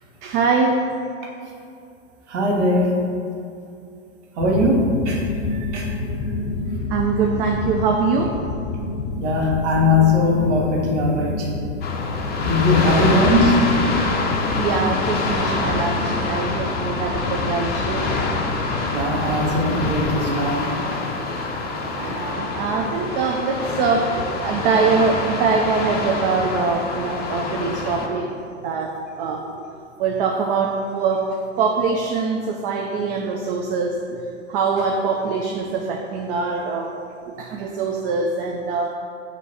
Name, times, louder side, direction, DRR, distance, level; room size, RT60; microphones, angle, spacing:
voice 1, 0.2-0.8 6.9-8.4 12.8-13.1 14.6-18.1 21.9-28.3 28.6-29.6 30.0-31.3 31.6-34.2 34.5-36.9 37.2-38.9, right 4 dB, 50° right, 1 dB, 0.6 m, -23 dB
voice 2, 2.3-3.0 4.4-5.2 5.7-5.9 9.2-11.5 12.4-13.7 18.9-20.6, left 2 dB, 70° right, -2 dB, 1.5 m, -19 dB
sound 1, 4.4-20.1, left 3 dB, 55° left, 0.8 m, -29 dB
sound 2, 11.8-28.1, left 3 dB, 25° left, 0.7 m, -26 dB
6.8 x 3.0 x 5.6 m, 2.4 s
hypercardioid pair, 115°, 37 cm